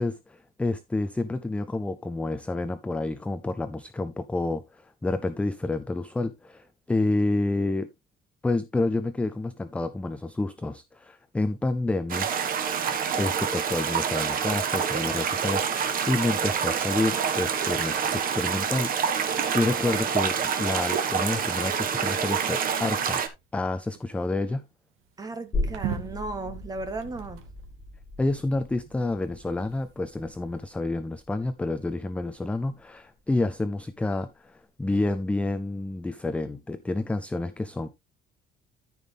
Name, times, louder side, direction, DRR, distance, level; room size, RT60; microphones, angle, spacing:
voice 1, 0.0-7.9 8.4-12.3 13.1-20.3 20.6-23.2 23.5-24.6 28.2-37.9, left 2 dB, 5° left, 0.4 m, -29 dB
sound 1, 12.1-23.3, right 7 dB, 40° right, 1.5 m, -27 dB
sound 2, 12.7-12.9 14.7-16.5 17.4-17.5 18.2-19.9 20.5-21.0 21.7-27.7 28.5-30.7, right 8 dB, 80° right, 2.4 m, -44 dB
voice 2, 19.8-20.1 25.2-27.4, right 3 dB, 15° right, 1.6 m, -36 dB
sound 3, 25.5-32.8 33.2-33.3, left 2 dB, 25° left, 5.5 m, -37 dB
13.5 x 5.4 x 3.4 m
cardioid pair, 175°, 21 cm